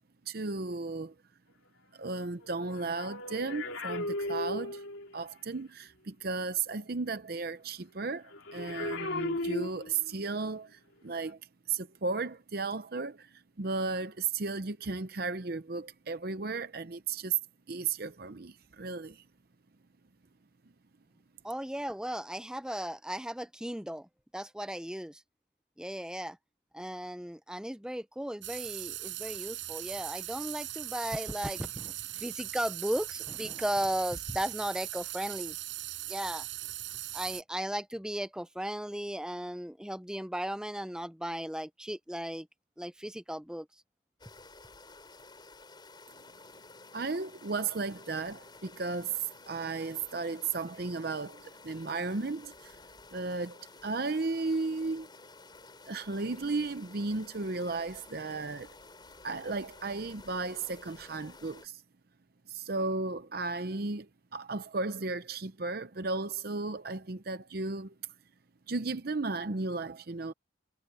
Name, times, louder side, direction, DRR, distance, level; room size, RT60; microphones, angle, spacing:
voice 1, 0.3-1.1 1.9-4.8 5.1-11.4 11.7-17.4 17.7-19.2 46.9-52.8 53.1-55.1 55.9-58.7 59.2-61.8 62.5-67.9 68.7-70.3, right 3 dB, 50° right, 0.7 m, -35 dB
sound 1, 2.4-5.2 8.3-10.2 11.1-11.3, left 2 dB, 85° left, 2.9 m, -36 dB
voice 2, 21.4-24.1 24.3-25.2 25.8-26.4 26.7-35.5 36.1-36.4 37.1-42.5 42.8-43.7, right 1 dB, 5° right, 0.6 m, -36 dB
sound 2, 28.4-37.4, right 15 dB, 75° right, 6.1 m, -40 dB
sound 3, 44.2-61.7, left 3 dB, 20° left, 6.7 m, -53 dB
head